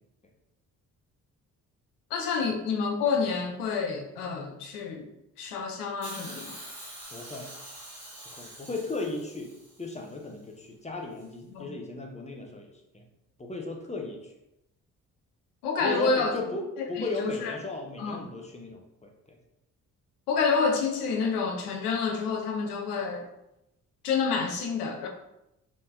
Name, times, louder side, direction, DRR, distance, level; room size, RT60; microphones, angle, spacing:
voice 1, 2.1-5.1 5.4-6.6 11.5-11.7 15.6-16.3 17.0-17.6 18.0-18.2 20.3-23.3 24.0-25.1, left 5 dB, 90° left, 3 dB, 0.5 m, -28 dB
Hiss, 6.0-10.2 11.2-11.3, right 1 dB, 40° right, 1.4 m, -45 dB
voice 2, 7.1-7.5 8.3-9.5 9.8-13.0 13.4-14.3 15.8-19.4, left 3 dB, 15° left, 2 dB, 0.7 m, -36 dB
3.6 x 2.7 x 2.7 m, 0.88 s
hypercardioid pair, 40°, 45 cm